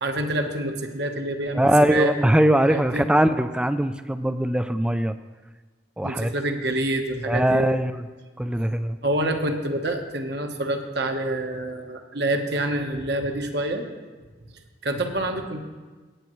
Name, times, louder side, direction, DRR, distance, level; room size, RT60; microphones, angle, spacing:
voice 1, 0.0-2.1 2.7-3.1 6.0-7.8 9.0-13.8 14.8-15.6, right 1 dB, 60° right, 5 dB, 1.1 m, -27 dB
voice 2, 1.5-5.1 6.0-6.3 7.3-8.1 8.4-9.0, right 1 dB, 5° right, 11 dB, 0.3 m, -21 dB
18.0 x 8.9 x 3.1 m, 1.3 s
head